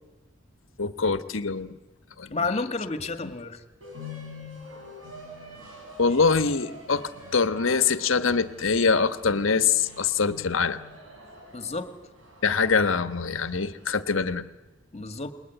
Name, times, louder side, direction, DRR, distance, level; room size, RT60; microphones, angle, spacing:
voice 1, 0.8-1.7 2.2-2.4 6.0-10.8 12.4-14.5, left 5 dB, 80° left, 11 dB, 1.3 m, -24 dB
voice 2, 2.3-3.6 11.5-11.9 14.9-15.3, left 3 dB, 35° left, 8 dB, 1.8 m, -30 dB
sound 1, 3.8-14.0, left 2 dB, 85° right, 6.9 m, -45 dB
28.5 x 21.0 x 9.3 m, 1.2 s
head